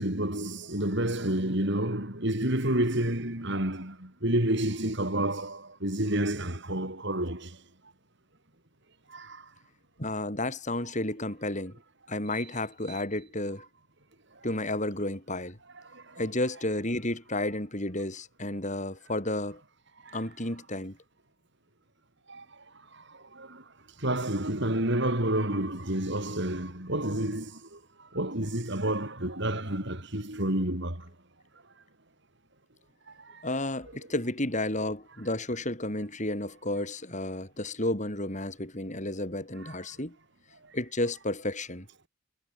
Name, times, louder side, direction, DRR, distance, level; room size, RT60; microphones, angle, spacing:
voice 1, 0.0-7.5 9.1-9.4 22.3-22.4 23.4-23.6 24.0-27.5 28.1-31.0 39.6-39.7, right 1 dB, 60° right, 5.5 m, -29 dB
voice 2, 10.0-11.7 12.1-13.6 14.4-15.6 16.2-19.6 20.1-21.0 33.4-40.2 40.7-41.9, left 1 dB, 35° left, 6.9 m, -32 dB
head